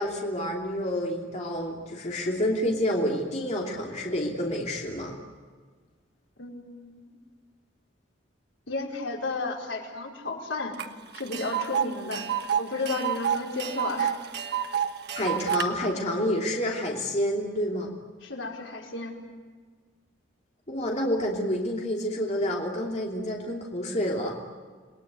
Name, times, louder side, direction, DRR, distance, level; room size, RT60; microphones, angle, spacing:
voice 1, 0.0-5.1 15.1-17.9 20.7-24.3, equal, 35° left, -1 dB, 3.0 m, -28 dB
voice 2, 6.4-7.2 8.7-10.8 11.1-12.2 12.6-14.2 18.2-19.1, left 3 dB, 75° left, 0 dB, 4.8 m, -33 dB
Tick, 10.8-10.9 11.1-15.7, right 9 dB, 60° right, 1.4 m, -29 dB
29.0 x 20.5 x 9.5 m, 1.5 s
head